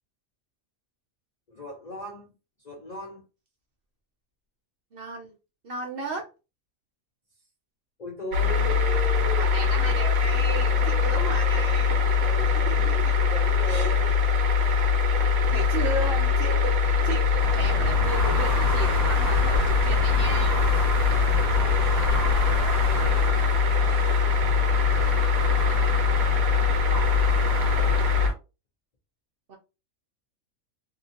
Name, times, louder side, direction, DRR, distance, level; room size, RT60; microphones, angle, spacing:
voice 1, 1.5-2.3 2.6-3.2 8.0-9.5 10.5-14.1 15.6-17.2 19.9-20.2 21.2-23.4 26.7-27.2, left 1 dB, 45° left, 0.5 m, -39 dB
voice 2, 4.9-5.3 5.6-6.3 9.4-11.9 12.5-13.1 13.7-13.9 15.4-20.6 29.5-29.6, right 3 dB, 50° right, 0.8 m, -35 dB
sound 1, 8.3-28.3, left 5 dB, 85° right, 1.0 m, -22 dB
sound 2, 17.4-28.3, equal, 35° right, 1.3 m, -31 dB
2.8 x 2.6 x 2.5 m
omnidirectional pair, 1.4 m